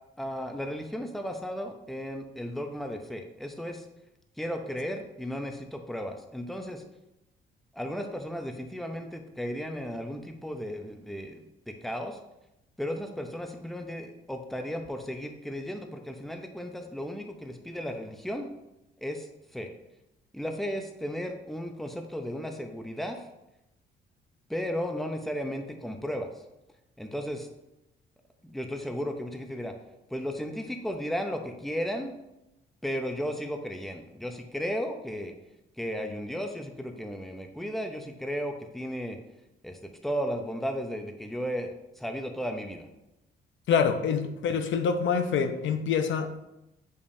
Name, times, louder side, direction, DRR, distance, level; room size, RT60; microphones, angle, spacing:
voice 1, 0.2-3.9 4.4-6.8 7.7-12.2 12.8-18.5 19.0-19.7 20.3-23.3 24.5-26.3 27.0-27.5 28.4-29.7 30.1-32.1 32.8-35.3 35.8-39.2 39.6-41.7 42.0-42.9, equal, ahead, 4 dB, 0.7 m, -34 dB
voice 2, 43.7-46.4, left 6 dB, 70° left, 8 dB, 0.6 m, -26 dB
6.7 x 5.4 x 2.7 m, 0.91 s
cardioid pair, 90°, 20 cm